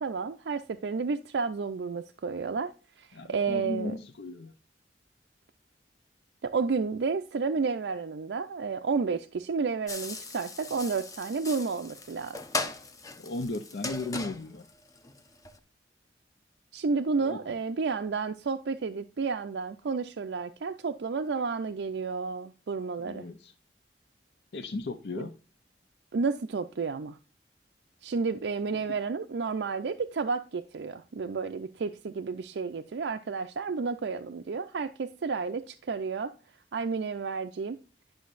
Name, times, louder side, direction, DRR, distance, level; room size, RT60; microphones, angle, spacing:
voice 1, 0.0-2.7 3.0-3.9 6.4-12.4 16.7-23.3 26.1-27.2 28.0-36.3 36.7-37.8, right 4 dB, 80° right, 0.4 m, -31 dB
voice 2, 3.1-4.5 13.2-14.7 17.2-17.4 23.0-23.5 24.5-25.3 28.7-28.8, left 2 dB, 70° left, 0.6 m, -36 dB
sound 1, 9.9-15.6, left 3 dB, 20° left, 0.7 m, -38 dB
10.5 x 6.3 x 2.5 m
head